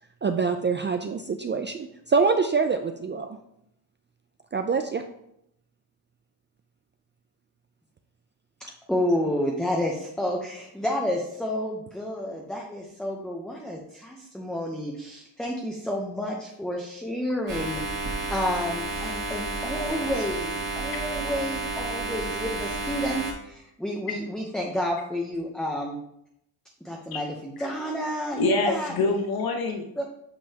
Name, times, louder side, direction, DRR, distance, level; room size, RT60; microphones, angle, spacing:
voice 1, 0.2-3.3 4.5-5.0, right 5 dB, 25° right, 6 dB, 0.3 m, -25 dB
voice 2, 8.9-26.0 26.8-28.9 30.0-30.1, equal, ahead, -1 dB, 0.8 m, -30 dB
sound 1, 17.5-23.3, right 3 dB, 45° right, 2.0 m, -31 dB
voice 3, 28.4-30.0, left 2 dB, 50° left, 3 dB, 1.1 m, -25 dB
8.7 x 5.4 x 2.9 m, 0.76 s
cardioid pair, 115°, 45 cm